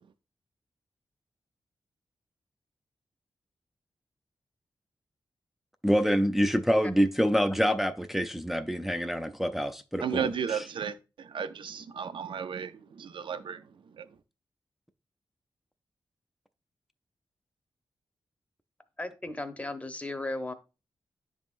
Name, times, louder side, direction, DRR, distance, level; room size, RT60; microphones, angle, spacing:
voice 1, 5.8-10.3, equal, 5° right, 0.4 m, -26 dB
voice 2, 10.0-14.1, right 7 dB, 75° right, 0.5 m, -34 dB
voice 3, 19.0-20.5, left 2 dB, 15° left, 0.8 m, -35 dB
10.5 x 3.6 x 2.5 m
cardioid pair, 75°, 8 cm